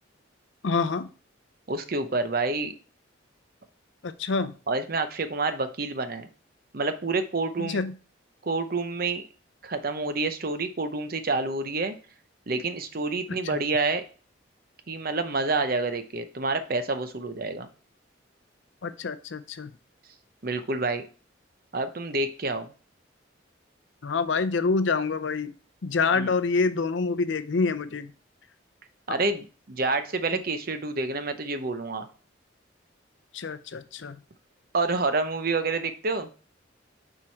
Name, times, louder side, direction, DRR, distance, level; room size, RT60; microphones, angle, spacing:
voice 1, 0.6-1.1 4.0-4.5 7.6-7.9 18.8-19.7 24.0-25.5 25.8-28.1 29.1-29.2 33.3-34.2, left 4 dB, 70° left, 13 dB, 0.6 m, -26 dB
voice 2, 1.7-2.7 4.7-6.3 6.7-7.8 8.4-9.3 9.6-11.9 12.5-14.0 14.9-17.7 20.4-21.1 21.7-22.7 26.1-26.3 29.1-32.1 34.7-36.3, right 3 dB, 50° right, 9 dB, 0.8 m, -28 dB
7.5 x 4.6 x 4.5 m, 0.38 s
head